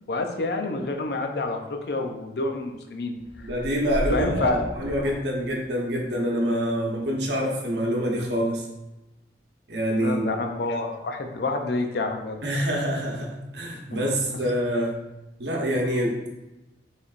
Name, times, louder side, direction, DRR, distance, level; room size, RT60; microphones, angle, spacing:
voice 1, 0.1-3.5 4.1-4.6 9.9-12.4, left 3 dB, 60° left, 4 dB, 0.5 m, -28 dB
sound 1, 3.2-5.9, equal, 25° right, 0.7 m, -33 dB
voice 2, 3.4-8.7 9.7-10.2 12.4-15.0 15.4-16.4, equal, 75° right, -1 dB, 1.0 m, -26 dB
5.1 x 3.4 x 2.5 m, 0.98 s
head